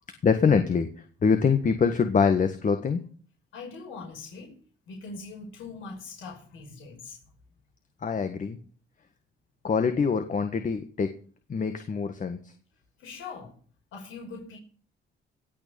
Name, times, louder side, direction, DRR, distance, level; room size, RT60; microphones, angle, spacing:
voice 1, 0.2-0.9 1.2-3.0 8.0-8.6 9.6-11.1 11.5-12.4, left 5 dB, 40° left, 1.6 m, -24 dB
voice 2, 3.5-4.6 4.9-7.2 13.0-13.6 13.9-14.6, left 4 dB, 85° left, 5.5 m, -41 dB
18.0 x 6.5 x 7.0 m
cardioid pair, 90°, 20 cm